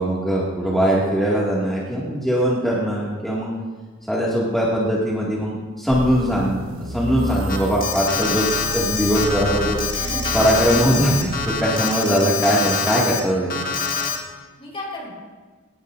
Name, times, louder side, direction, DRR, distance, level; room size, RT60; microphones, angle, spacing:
voice 1, 0.0-3.5 4.1-6.6 6.9-9.8 10.3-13.6, equal, ahead, -7 dB, 2.3 m, -21 dB
sound 1, 5.9-11.6, right 1 dB, 80° right, 1.0 m, -31 dB
Alarm, 7.5-13.2 13.5-14.2, left 5 dB, 45° left, 1.8 m, -25 dB
voice 2, 9.9-10.5 11.9-12.2 14.3-15.1, left 1 dB, 25° left, -3 dB, 4.6 m, -35 dB
21.0 x 19.0 x 2.7 m, 1.5 s
head